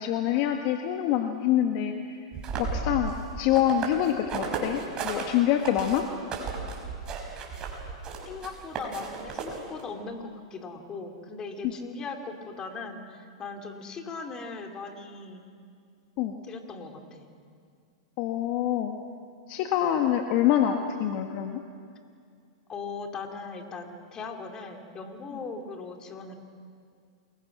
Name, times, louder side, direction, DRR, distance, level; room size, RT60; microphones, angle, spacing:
voice 1, 0.0-1.9 2.6-6.1 11.6-11.7 16.2-16.3 18.2-18.9 19.5-21.6, left 11 dB, 50° left, 4 dB, 1.6 m, -26 dB
sound 1, 2.3-5.2 5.6-9.8, right 5 dB, 30° right, 5.6 m, -34 dB
voice 2, 8.2-15.4 16.4-17.3 22.7-26.4, left 4 dB, 25° left, 4 dB, 3.0 m, -39 dB
28.5 x 21.0 x 6.2 m, 2.2 s
hypercardioid pair, 115°, 3 cm